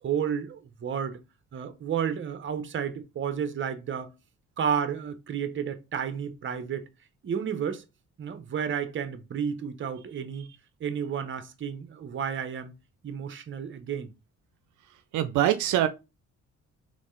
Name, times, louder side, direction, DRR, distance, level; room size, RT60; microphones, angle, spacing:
voice 1, 0.0-1.2 1.5-4.1 4.6-6.9 7.2-7.8 8.2-10.5 10.8-12.7 13.0-14.1, right 7 dB, 40° right, 0.8 m, -31 dB
voice 2, 15.1-15.9, right 12 dB, 80° right, 0.5 m, -23 dB
4.2 x 3.1 x 3.1 m
cardioid pair, 90°, 30 cm